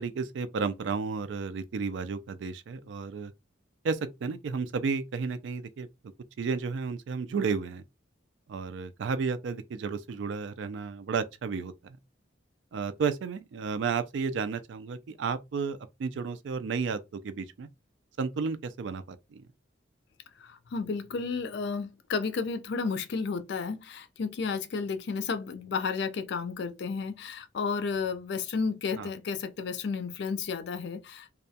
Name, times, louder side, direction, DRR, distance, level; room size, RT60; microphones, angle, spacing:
voice 1, 0.0-3.3 3.8-5.9 6.4-7.8 8.5-12.0 12.7-17.7 18.2-19.4 28.9-29.1, right 5 dB, 65° right, 0.3 m, -32 dB
voice 2, 20.4-31.3, left 5 dB, 60° left, 0.4 m, -32 dB
2.3 x 2.1 x 2.6 m
head